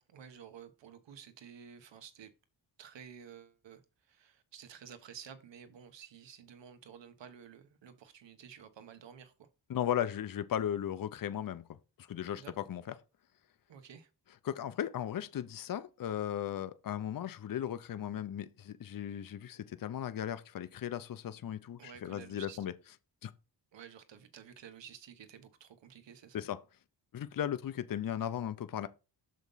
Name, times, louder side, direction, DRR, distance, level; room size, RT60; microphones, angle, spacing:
voice 1, 0.0-2.3 2.8-9.5 12.3-12.7 13.7-14.1 21.8-22.6 23.7-26.4, right 8 dB, 80° right, 1.2 m, -52 dB
voice 2, 9.7-11.6 12.0-12.8 14.4-22.7 23.2-23.3 26.3-26.6 27.1-28.9, left 10 dB, 50° left, 0.7 m, -36 dB
6.6 x 5.1 x 4.0 m
cardioid pair, 90°, 44 cm